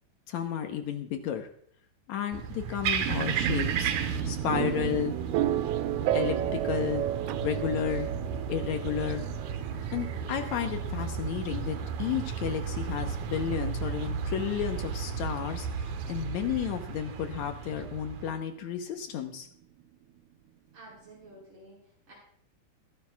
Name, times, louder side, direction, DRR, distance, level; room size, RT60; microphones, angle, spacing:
voice 1, 0.3-1.5 2.1-3.9 4.3-5.1 6.1-7.0 7.4-8.1 8.5-9.3 9.9-19.5, left 9 dB, 70° left, 6 dB, 2.0 m, -32 dB
sound 1, 2.3-18.3, right 7 dB, 65° right, 2.2 m, -34 dB
sound 2, 3.1-16.8, right 12 dB, 85° right, 1.7 m, -34 dB
voice 2, 20.7-22.1, right 2 dB, 40° right, -4 dB, 7.4 m, -51 dB
22.5 x 11.5 x 2.4 m, 0.65 s
omnidirectional pair, 4.1 m